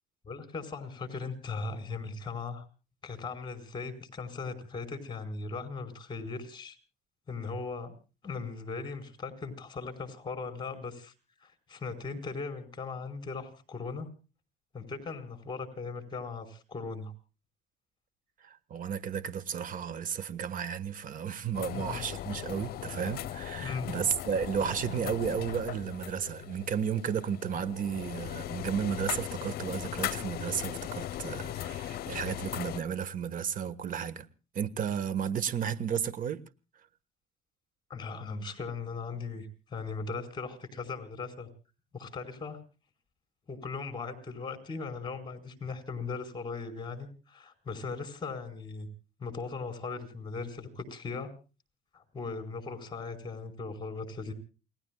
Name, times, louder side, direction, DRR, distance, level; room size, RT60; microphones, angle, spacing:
voice 1, 0.2-2.6 3.0-6.8 7.3-7.9 8.2-11.1 11.4-14.1 14.7-17.1 21.7-22.0 23.6-23.9 37.9-41.5 41.9-42.6 43.5-48.9 49.2-51.3 51.9-54.3, left 4 dB, 25° left, 4.8 m, -38 dB
voice 2, 18.4-34.3 34.5-36.4, right 8 dB, 55° right, 1.5 m, -33 dB
sound 1, 21.5-32.8, left 13 dB, 65° left, 0.9 m, -38 dB
29.0 x 20.0 x 2.3 m
cardioid pair, 110°, 17 cm